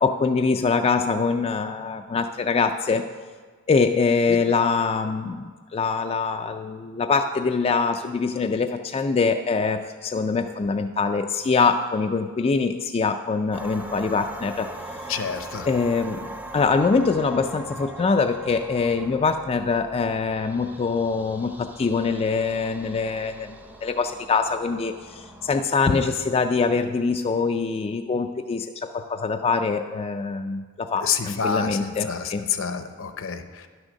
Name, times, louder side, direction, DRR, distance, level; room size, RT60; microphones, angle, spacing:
voice 1, 0.0-3.0 3.7-14.7 15.6-32.4, left 4 dB, 30° left, 6 dB, 0.3 m, -24 dB
sound 1, 13.5-25.6, right 1 dB, 10° right, 0.6 m, -40 dB
voice 2, 15.1-15.7 31.0-33.7, left 7 dB, 65° left, 9 dB, 0.7 m, -28 dB
11.0 x 6.3 x 6.3 m, 1.5 s
head